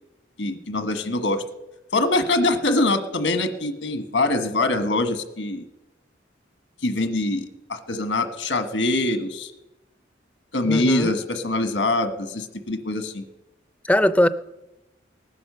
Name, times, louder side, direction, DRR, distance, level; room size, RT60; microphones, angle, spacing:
voice 1, 0.4-1.4 1.9-5.6 6.8-9.5 10.5-13.2, left 2 dB, 80° left, 9 dB, 1.4 m, -24 dB
voice 2, 10.7-11.1 13.8-14.3, left 1 dB, 5° left, 14 dB, 0.4 m, -19 dB
18.0 x 9.8 x 6.8 m, 0.97 s
head